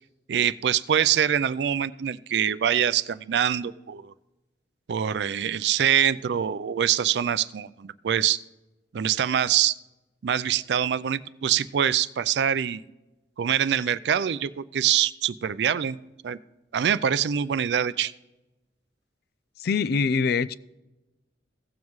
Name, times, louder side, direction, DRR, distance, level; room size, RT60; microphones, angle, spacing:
voice 1, 0.3-4.1 4.9-8.4 8.9-9.7 10.2-12.8 13.4-16.0 16.2-16.4 16.7-18.1, right 9 dB, 70° right, 0.4 m, -24 dB
voice 2, 19.6-20.6, left 5 dB, 60° left, 0.4 m, -24 dB
16.5 x 7.3 x 3.1 m
head